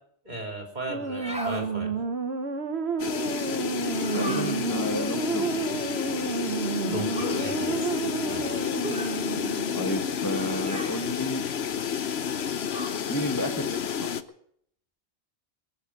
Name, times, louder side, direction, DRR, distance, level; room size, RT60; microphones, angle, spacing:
voice 1, 0.3-2.0 6.8-7.9 8.2-8.6, right 1 dB, 45° right, 2 dB, 3.7 m, -36 dB
sound 1, 0.9-9.8, right 5 dB, 80° right, 1.5 m, -31 dB
sound 2, 1.0-1.7 3.9-4.6 7.1-7.4 8.8-9.2 10.6-11.0 12.7-13.0, equal, 5° right, 2.9 m, -36 dB
sound 3, 3.0-14.2, left 8 dB, 80° left, 1.1 m, -30 dB
voice 2, 4.1-5.5 9.8-11.4 13.1-14.1, left 1 dB, 20° left, 5 dB, 1.1 m, -32 dB
20.0 x 7.3 x 9.7 m, 0.67 s
omnidirectional pair, 1.1 m